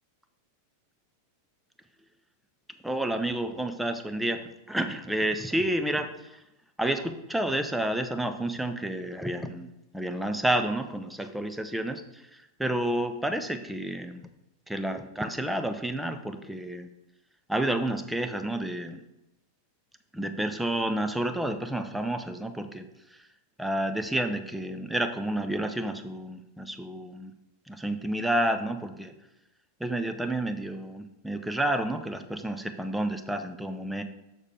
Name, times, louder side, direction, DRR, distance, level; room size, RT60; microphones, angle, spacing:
voice 1, 2.8-6.4 6.8-14.2 14.7-16.9 17.5-19.0 20.1-23.2 23.6-27.3 27.7-29.1 29.8-34.0, right 1 dB, 5° right, 8 dB, 0.6 m, -30 dB
6.5 x 6.4 x 3.6 m, 0.95 s
figure-of-eight pair, 90°, 0 cm